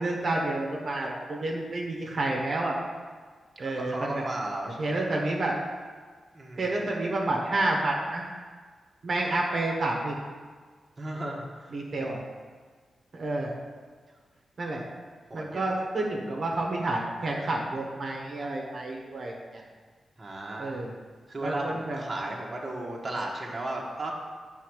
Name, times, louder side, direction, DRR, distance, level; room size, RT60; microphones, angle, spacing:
voice 1, 0.0-2.8 3.6-4.2 4.8-5.6 6.6-8.2 9.0-10.2 11.7-12.2 13.1-13.5 14.6-14.8 15.3-19.6 20.6-20.9 21.4-22.0, right 2 dB, 50° right, -1 dB, 1.2 m, -29 dB
voice 2, 3.6-5.0 6.3-6.7 11.0-12.2 15.3-15.7 20.2-20.8 21.3-24.1, right 1 dB, 30° right, -2 dB, 1.3 m, -35 dB
9.1 x 4.2 x 6.3 m, 1.5 s
wide cardioid pair, 120°, 0 cm